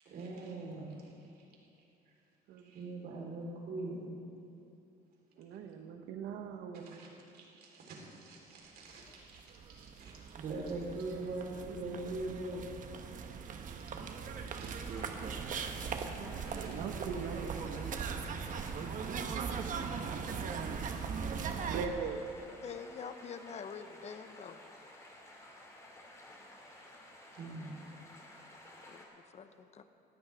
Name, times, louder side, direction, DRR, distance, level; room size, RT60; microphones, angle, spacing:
voice 1, 0.1-1.4 2.6-4.2 5.5-5.6 6.9-12.6 14.4-15.1 15.8-15.9 16.4-16.7 27.3-27.8, right 2 dB, 65° right, -2 dB, 4.1 m, -43 dB
voice 2, 5.4-7.0 16.6-17.9 21.7-22.2, right 6 dB, 85° right, 5 dB, 1.3 m, -40 dB
sound 1, 9.1-9.2 9.3-21.9, right 6 dB, 50° right, 1.2 m, -39 dB
sound 2, 14.9-29.0, left 1 dB, 20° left, 2.7 m, -54 dB
voice 3, 22.6-24.6 28.9-29.8, left 6 dB, 40° left, 9 dB, 0.9 m, -46 dB
19.5 x 14.5 x 3.6 m, 2.7 s
cardioid pair, 110°, 17 cm